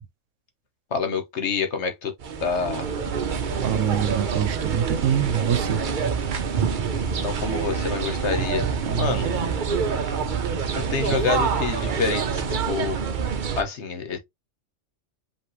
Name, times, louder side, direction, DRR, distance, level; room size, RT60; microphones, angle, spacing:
voice 1, 0.9-2.1 2.4-2.9 7.2-9.3 10.7-13.0 13.6-14.2, left 5 dB, 65° left, 1.3 m, -27 dB
sound 1, 2.2-13.6, right 6 dB, 50° right, 0.7 m, -26 dB
voice 2, 3.6-5.8 8.9-9.3, right 9 dB, 85° right, 1.1 m, -25 dB
5.3 x 2.7 x 3.1 m
omnidirectional pair, 1.3 m